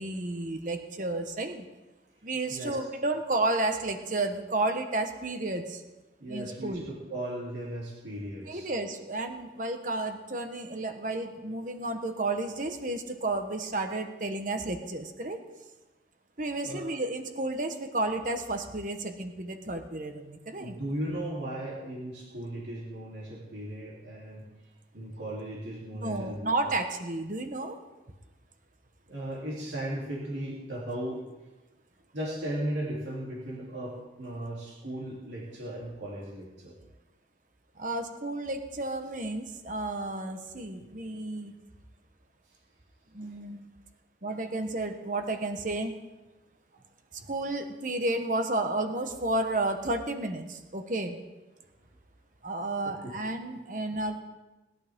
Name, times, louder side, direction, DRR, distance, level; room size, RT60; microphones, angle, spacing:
voice 1, 0.0-1.6 2.2-5.8 6.3-6.8 8.5-15.4 16.4-20.7 26.0-27.8 37.8-41.5 43.1-43.7 44.2-46.0 47.3-51.2 52.4-54.2, right 2 dB, 45° right, 6 dB, 1.3 m, -32 dB
voice 2, 6.2-8.7 16.6-16.9 20.6-24.5 24.9-26.4 29.1-31.2 32.1-36.7 43.2-43.3 46.7-46.8 47.2-47.3 52.8-53.0, right 1 dB, 75° right, -6 dB, 3.3 m, -36 dB
20.0 x 11.5 x 3.7 m, 1.1 s
head